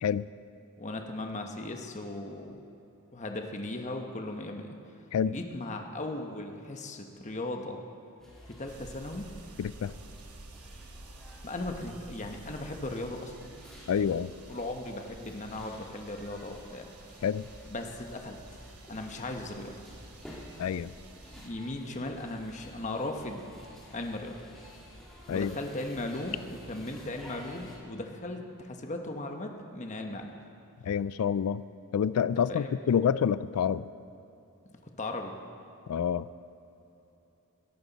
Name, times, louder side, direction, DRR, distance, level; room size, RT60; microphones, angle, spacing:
voice 1, 0.8-2.6 3.1-4.7 5.3-7.8 8.5-9.3 11.4-13.3 13.9-16.9 17.7-18.4 18.9-19.7 21.3-23.4 23.9-24.4 25.3-30.4 32.5-32.7 34.8-35.3, left 2 dB, 30° left, 3 dB, 1.1 m, -37 dB
sound 1, 8.2-27.8, equal, ahead, 2.7 m, -51 dB
sound 2, 8.7-21.5, right 3 dB, 90° right, 1.0 m, -51 dB
voice 2, 9.6-9.9 13.9-14.3 17.2-17.5 20.6-20.9 25.3-25.5 30.8-31.6 31.9-33.9 35.9-36.3, left 7 dB, 75° left, 17 dB, 0.3 m, -27 dB
21.5 x 11.5 x 4.1 m, 2.9 s
head